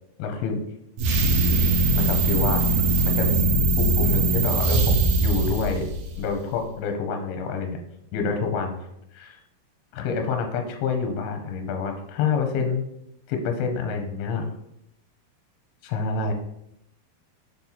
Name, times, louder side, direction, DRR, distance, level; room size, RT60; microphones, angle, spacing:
voice 1, 0.2-0.6 1.9-2.6 3.0-5.9 6.2-7.8 8.1-8.8 9.2-9.4 9.9-12.9 13.3-14.5 15.8-16.3, left 5 dB, 80° left, 5 dB, 2.8 m, -27 dB
sound 1, 1.0-6.4, right 3 dB, 70° right, 1.9 m, -21 dB
6.8 x 4.3 x 4.1 m, 0.80 s
omnidirectional pair, 4.6 m